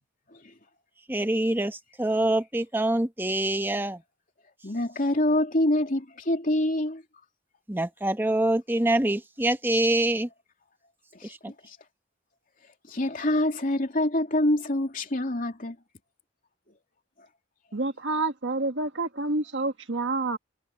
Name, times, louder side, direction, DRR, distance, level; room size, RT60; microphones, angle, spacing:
voice 1, 1.1-4.0 7.7-10.3 11.2-11.5, right 1 dB, 10° right, 1.1 m, -25 dB
voice 2, 4.6-7.0 11.2-11.3 11.6-11.8 12.9-15.8, left 1 dB, 45° left, 3.1 m, -26 dB
voice 3, 17.7-20.4, right 2 dB, 70° right, 1.6 m, -28 dB
head